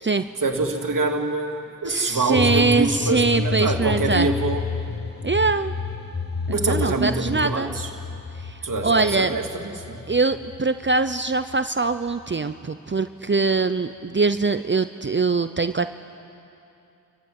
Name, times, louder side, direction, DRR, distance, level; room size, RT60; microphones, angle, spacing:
voice 1, 0.4-4.6 6.5-7.9 8.6-10.0, right 3 dB, 65° right, 3 dB, 2.5 m, -25 dB
voice 2, 1.9-4.3 5.2-5.7 6.5-7.7 8.4-9.3 10.1-15.9, right 4 dB, 35° right, 11 dB, 0.7 m, -23 dB
sound 1, 2.3-12.2 12.5-12.6, left 4 dB, 30° left, 0.9 m, -30 dB
29.5 x 15.0 x 9.4 m, 2.7 s
cardioid pair, 50°, 35 cm